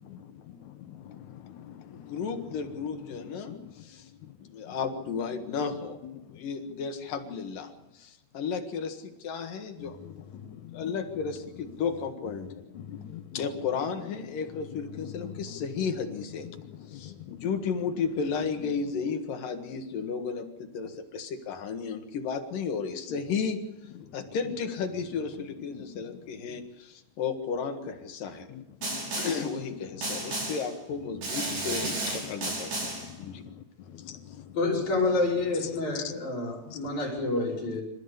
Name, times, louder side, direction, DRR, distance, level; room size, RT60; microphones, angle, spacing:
voice 1, 0.0-2.2 3.1-3.8 4.2-4.4 4.6-4.8 6.0-6.4 9.8-10.9 12.7-13.5 14.7-15.6 16.4-17.4 23.9-24.1 25.4-26.2 26.5-26.6 28.5-29.2 29.9-30.5 31.5-32.5 32.8-34.6 35.6-36.2 36.7-36.8 37.5-37.8, left 10 dB, 85° left, 1.6 m, -44 dB
voice 2, 1.9-4.1 4.4-6.0 6.3-10.0 10.3-12.7 13.4-16.5 16.9-23.6 24.1-28.5 29.2-32.9 33.2-33.4, left 5 dB, 60° left, 3.1 m, -33 dB
Snare drum, 28.8-29.5 30.0-30.7 31.2-33.1, right 2 dB, 65° right, 8.0 m, -33 dB
voice 3, 34.5-37.8, left 3 dB, 45° left, 6.3 m, -28 dB
27.0 x 14.0 x 8.3 m
omnidirectional pair, 4.8 m